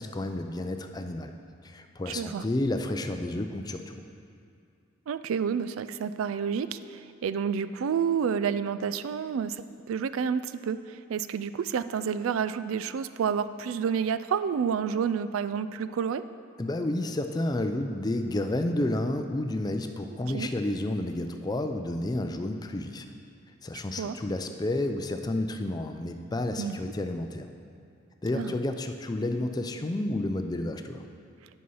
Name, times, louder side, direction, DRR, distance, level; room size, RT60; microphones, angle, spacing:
voice 1, 0.0-1.3 1.6-4.0 16.6-23.0 23.6-27.5 28.2-31.0, left 1 dB, 20° left, 6 dB, 0.4 m, -31 dB
voice 2, 2.1-2.4 5.1-9.6 9.9-16.2 20.3-20.5 24.0-24.2 26.6-26.8 28.3-28.5, right 7 dB, 90° right, 13 dB, 0.3 m, -29 dB
9.5 x 5.6 x 5.4 m, 2.4 s
head